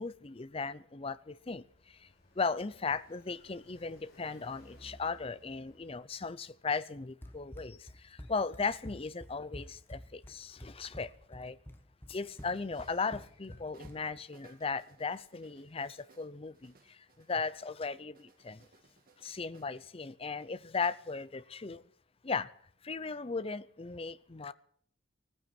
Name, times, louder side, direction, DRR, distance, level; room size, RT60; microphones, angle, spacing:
voice 1, 0.0-1.6 2.4-7.8 8.3-11.6 12.1-16.7 17.3-18.6 19.2-21.8 22.2-22.5 22.8-24.5, left 4 dB, 30° left, 0.6 m, -37 dB
Car passing by, 1.1-6.5, left 1 dB, 50° left, 4.4 m, -60 dB
Run, 7.2-14.2, equal, 10° left, 1.2 m, -49 dB
sound 1, 12.2-13.4 13.7-17.7 18.1-19.7, right 4 dB, 50° right, 2.0 m, -64 dB
16.5 x 14.5 x 5.9 m
head